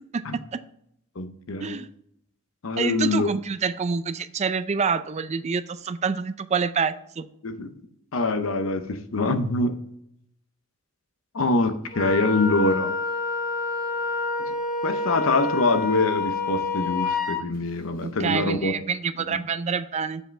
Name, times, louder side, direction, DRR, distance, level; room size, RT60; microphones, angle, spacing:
voice 1, 1.2-1.8 2.6-3.3 7.4-7.7 8.1-9.8 11.3-12.9 14.8-18.7 19.3-19.4, left 2 dB, 70° left, 9 dB, 0.7 m, -24 dB
voice 2, 2.8-7.3 18.0-20.2, right 5 dB, 30° right, 13 dB, 0.4 m, -27 dB
Wind instrument woodwind instrument, 11.9-17.4, left 3 dB, 45° left, 1.0 m, -28 dB
7.6 x 5.0 x 3.2 m, 0.75 s
head